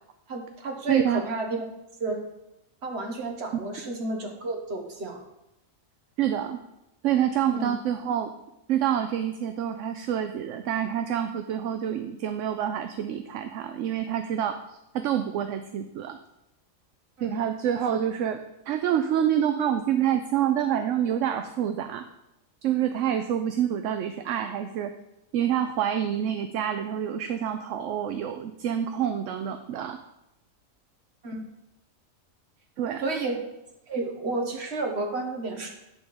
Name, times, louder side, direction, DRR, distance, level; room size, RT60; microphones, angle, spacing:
voice 1, 0.3-1.7 2.0-2.2 2.8-5.2 7.5-7.7 17.2-17.4 31.2-31.4 33.0-33.4 33.9-35.7, right 2 dB, 50° right, 2 dB, 1.6 m, -31 dB
voice 2, 0.9-1.2 6.2-6.6 7.0-8.3 8.7-16.2 17.2-18.4 18.7-22.0 22.6-24.9 25.3-30.0 32.8-33.1, right 10 dB, 70° right, 8 dB, 0.9 m, -27 dB
10.5 x 3.7 x 7.0 m, 0.89 s
omnidirectional pair, 1.4 m